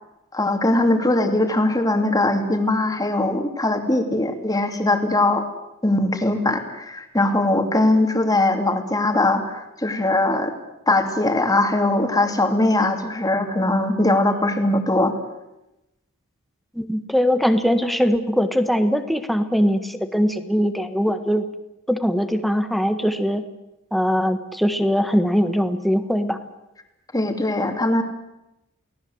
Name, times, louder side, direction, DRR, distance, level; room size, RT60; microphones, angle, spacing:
voice 1, 0.3-5.4 5.8-10.5 10.9-15.1 27.1-28.0, left 2 dB, 15° left, 5 dB, 2.7 m, -20 dB
voice 2, 16.7-21.4 21.9-23.4 23.9-26.4, equal, ahead, 8 dB, 1.5 m, -21 dB
29.0 x 18.5 x 8.0 m, 0.94 s
head